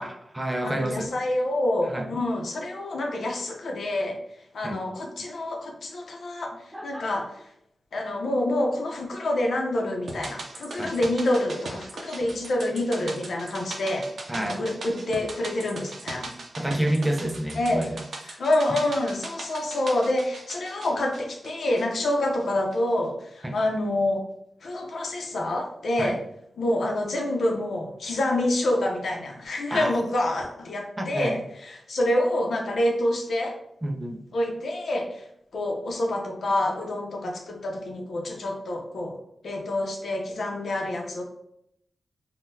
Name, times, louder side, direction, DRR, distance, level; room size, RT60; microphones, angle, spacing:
voice 1, 0.0-1.1 1.9-2.1 4.6-4.8 6.7-7.1 10.8-10.9 14.3-14.6 16.6-18.0 23.4-23.6 26.0-26.1 29.7-29.9 31.0-31.4 33.8-34.2, right 1 dB, 15° right, 2 dB, 0.4 m, -29 dB
voice 2, 0.6-4.2 4.5-7.3 7.9-14.1 14.4-16.3 17.5-17.8 18.2-24.2 24.6-26.2 26.6-33.5 34.3-35.3 35.5-39.2 39.4-41.2, left 1 dB, 70° left, 1 dB, 0.7 m, -27 dB
sound 1, 10.1-22.4 22.7-22.8, right 2 dB, 65° right, 0.5 m, -40 dB
3.5 x 2.2 x 2.7 m, 0.75 s
wide cardioid pair, 160°, 0 cm